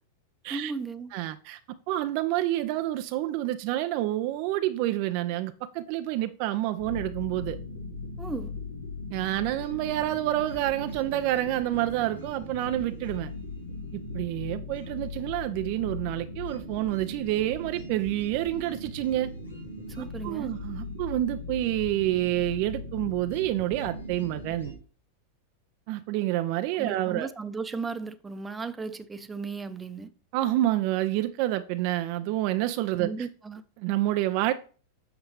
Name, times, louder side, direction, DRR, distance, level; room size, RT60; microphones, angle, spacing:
voice 1, 0.5-1.1 8.2-8.6 19.9-20.5 26.8-30.1 33.0-33.6, right 4 dB, 15° right, 0.7 m, -35 dB
voice 2, 1.1-1.6 1.9-7.6 9.1-13.3 13.9-19.3 20.0-24.7 25.9-27.3 30.3-33.3 33.8-34.5, right 14 dB, 45° right, 0.5 m, -28 dB
sound 1, 6.8-24.7, left 2 dB, 85° left, 2.3 m, -39 dB
7.9 x 6.7 x 3.3 m
figure-of-eight pair, 90°, 0 cm